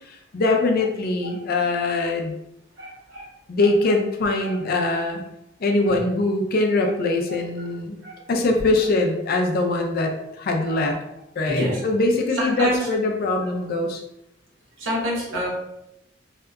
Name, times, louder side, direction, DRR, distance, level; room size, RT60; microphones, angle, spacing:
voice 1, 0.1-2.3 3.5-5.2 5.6-8.0 8.3-11.0 11.4-14.0, left 2 dB, 50° left, 3 dB, 0.4 m, -22 dB
voice 2, 2.8-3.3 4.4-4.6 5.9-6.0 6.8-6.9 7.6-7.7 8.0-8.2 10.7-10.8 11.5-11.8 12.4-12.9 13.4-13.5 14.8-15.5, equal, 75° right, -4 dB, 0.9 m, -27 dB
2.7 x 2.2 x 2.3 m, 0.84 s
head